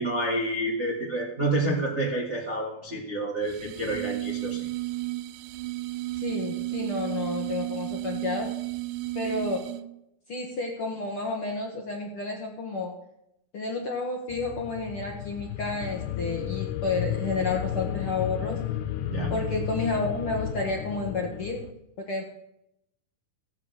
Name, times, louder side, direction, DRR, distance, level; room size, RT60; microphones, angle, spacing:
voice 1, 0.0-4.7 19.1-19.3, right 1 dB, 40° right, -2 dB, 1.0 m, -29 dB
sound 1, 3.4-10.0, right 19 dB, 80° right, 2.1 m, -33 dB
voice 2, 6.1-8.5 9.1-9.6 10.3-12.9 13.5-18.6 19.3-21.7 22.0-22.2, left 3 dB, 55° left, 0 dB, 1.6 m, -31 dB
sound 2, 14.3-21.7, left 11 dB, 75° left, 1.9 m, -33 dB
15.5 x 7.4 x 8.1 m, 0.82 s
omnidirectional pair, 4.3 m